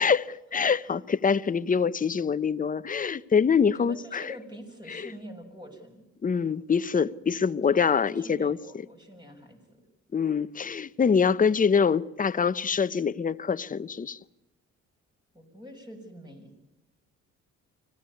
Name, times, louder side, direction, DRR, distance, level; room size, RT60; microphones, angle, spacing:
voice 1, 0.0-4.3 4.9-5.0 6.2-8.6 10.1-14.2, left 6 dB, 25° left, 0.8 m, -25 dB
voice 2, 3.7-6.0 7.7-9.8 15.3-16.6, equal, 15° right, 6.3 m, -45 dB
25.0 x 16.0 x 9.5 m
cardioid pair, 90°, 30 cm